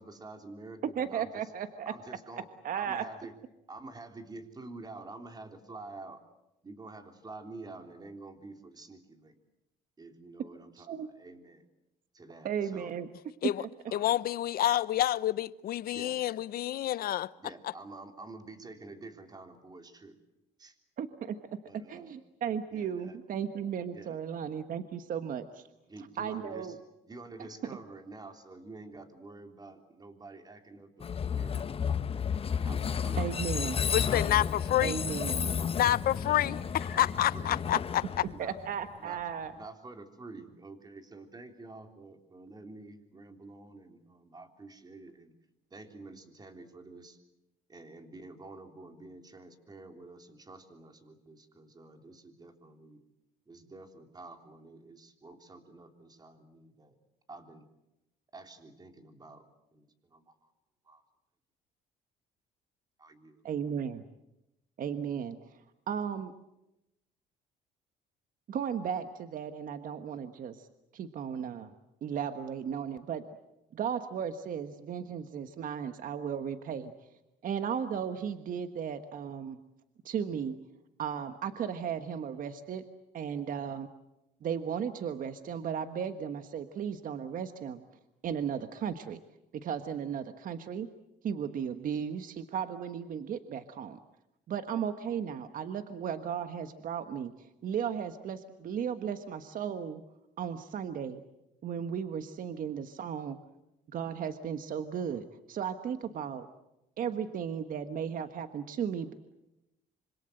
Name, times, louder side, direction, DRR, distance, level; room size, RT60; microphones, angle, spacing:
voice 1, 0.0-1.5 1.8-3.3 3.7-6.2 6.6-9.4 10.0-11.6 12.1-12.9 13.9-14.1 15.9-16.2 16.6-16.7 17.4-20.2 20.6-20.8 21.6-22.2 22.7-23.2 23.9-24.2 25.9-26.8 27.0-31.6 32.6-33.3 34.8-35.2 36.3-36.5 36.9-37.5 38.2-38.5 39.0-45.3 45.7-47.2 47.7-53.0 53.5-57.0 57.3-57.7 58.3-59.4 59.7-60.5 60.8-61.0 63.0-63.4, right 2 dB, 25° right, 3.5 m, -48 dB
voice 2, 1.0-1.9 2.6-3.0 10.8-11.1 12.4-13.1 13.4-13.7 21.0-21.4 21.9-25.6 26.2-26.8 33.2-33.8 34.8-35.5 38.4-39.5 63.4-64.0 64.8-65.6 65.9-66.3 68.5-70.7 70.9-71.7 72.0-73.2 73.7-76.9 77.4-79.6 80.0-80.6 81.0-82.8 83.1-83.9 84.4-87.8 88.2-89.2 89.5-90.9 91.2-94.0 94.5-100.0 100.4-101.2 101.6-103.4 103.9-106.5 107.0-109.1, right 8 dB, 55° right, 1.4 m, -35 dB
voice 3, 13.9-17.3 33.9-35.0 35.8-36.6 36.9-38.0, left 13 dB, 60° left, 0.9 m, -28 dB
Train, 31.0-39.0, left 7 dB, 35° left, 1.1 m, -32 dB
26.0 x 25.5 x 7.9 m
cardioid pair, 110°, 17 cm